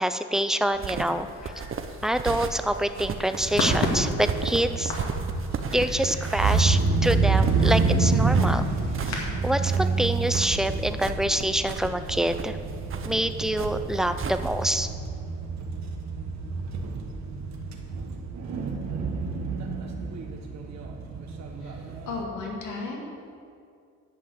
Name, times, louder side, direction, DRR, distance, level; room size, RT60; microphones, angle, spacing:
voice 1, 0.0-1.5 2.0-5.0 5.7-8.6 9.1-12.6 13.1-14.9, right 1 dB, ahead, 9 dB, 0.5 m, -26 dB
sound 1, 0.7-14.8, right 5 dB, 45° right, 0.8 m, -35 dB
sound 2, 1.1-9.3, left 2 dB, 60° left, 2.3 m, -35 dB
sound 3, 3.4-22.2, right 4 dB, 65° right, 1.3 m, -28 dB
voice 2, 21.6-23.1, left 3 dB, 85° left, 0 dB, 2.1 m, -35 dB
10.5 x 5.5 x 8.0 m, 2.3 s
cardioid pair, 90°, 30 cm